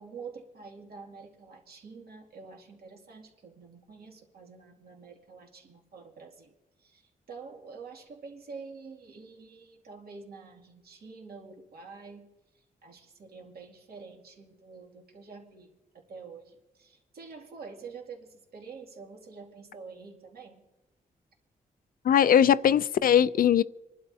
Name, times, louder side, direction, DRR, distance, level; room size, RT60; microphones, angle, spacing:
voice 1, 0.0-6.5 6.8-20.7, right 4 dB, 75° right, 2.5 m, -47 dB
voice 2, 22.0-23.6, left 9 dB, 65° left, 0.4 m, -20 dB
28.0 x 11.5 x 2.8 m
wide cardioid pair, 120°, 16 cm